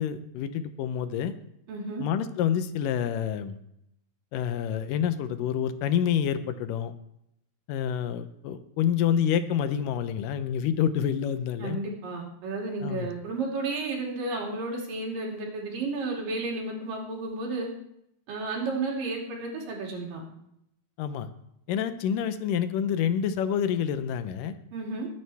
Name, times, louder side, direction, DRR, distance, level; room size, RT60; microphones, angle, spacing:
voice 1, 0.0-1.3 2.0-3.6 4.3-6.9 7.7-11.8 12.8-13.1 21.0-21.3 21.7-24.5, left 9 dB, 80° left, 11 dB, 2.4 m, -28 dB
voice 2, 1.7-2.0 11.6-17.7 18.3-20.2 24.7-25.1, right 3 dB, 80° right, -1 dB, 4.4 m, -32 dB
21.5 x 9.5 x 3.4 m, 0.78 s
omnidirectional pair, 3.8 m